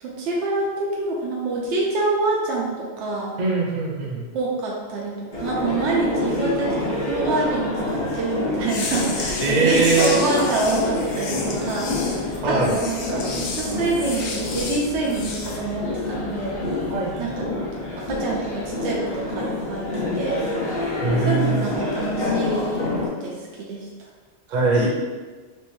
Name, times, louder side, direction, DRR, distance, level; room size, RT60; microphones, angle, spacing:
voice 1, 0.0-3.4 4.3-11.9 12.2-16.6 17.2-17.5 18.0-19.9 20.1-20.4 21.2-22.9 23.2-23.9, right 3 dB, 90° right, -3 dB, 0.9 m, -26 dB
voice 2, 3.4-4.3 9.4-10.2 12.4-12.8 16.9-17.3 21.0-21.7 24.5-24.9, right 3 dB, 50° right, -3 dB, 0.7 m, -21 dB
sound 1, 5.3-23.1, left 2 dB, 45° left, 0.8 m, -27 dB
sound 2, 8.6-15.6, left 4 dB, 80° left, 0.9 m, -32 dB
3.2 x 3.0 x 3.1 m, 1.4 s
omnidirectional pair, 1.1 m